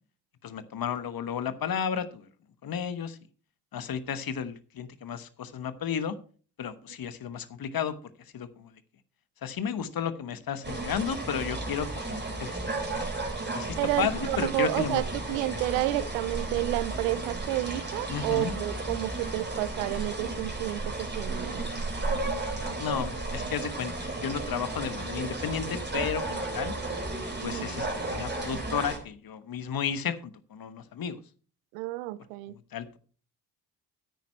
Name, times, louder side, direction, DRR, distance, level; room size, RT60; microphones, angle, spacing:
voice 1, 0.4-2.3 2.6-3.2 3.7-6.2 6.6-8.0 8.3-8.7 9.4-12.6 13.5-15.0 15.5-15.6 18.1-18.5 22.8-26.8 27.4-31.2 32.7-33.0, left 7 dB, 50° left, 1.2 m, -33 dB
sound 1, 10.6-29.0, right 2 dB, 25° right, 3.7 m, -34 dB
voice 2, 13.8-21.7 27.4-27.7 31.7-32.6, right 17 dB, 85° right, 0.6 m, -30 dB
9.3 x 9.3 x 4.3 m
hypercardioid pair, 45°, 45 cm